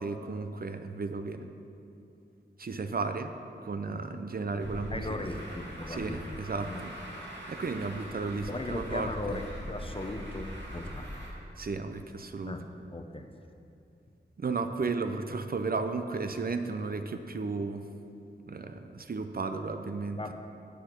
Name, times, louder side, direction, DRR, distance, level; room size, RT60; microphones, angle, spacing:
voice 1, 0.0-1.5 2.6-3.3 3.6-5.3 5.9-6.9 7.5-9.4 11.6-12.6 14.4-17.9 18.5-20.2, right 4 dB, 55° right, 8 dB, 0.5 m, -34 dB
voice 2, 3.9-4.2 4.9-6.4 6.6-6.8 8.5-11.2 12.4-12.6 12.9-13.3 20.2-20.3, left 2 dB, 30° left, 6 dB, 0.7 m, -38 dB
Truck, 4.6-11.3, equal, 80° right, 2.0 m, -42 dB
7.8 x 6.7 x 6.5 m, 2.7 s
wide cardioid pair, 70°, 19 cm